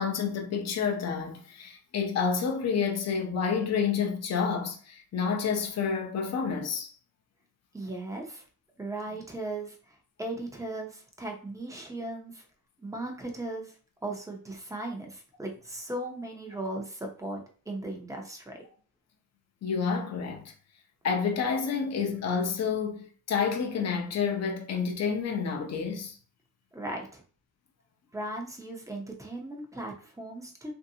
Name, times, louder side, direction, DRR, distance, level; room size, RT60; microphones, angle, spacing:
voice 1, 0.0-6.9 19.6-20.5 21.0-26.2, left 6 dB, 45° left, 0.7 m, -29 dB
voice 2, 7.7-8.4 8.8-12.4 12.8-13.8 14.0-18.6 26.7-27.2 28.1-30.7, right 2 dB, 10° right, 0.6 m, -37 dB
3.1 x 2.7 x 2.7 m
cardioid pair, 135°, 37 cm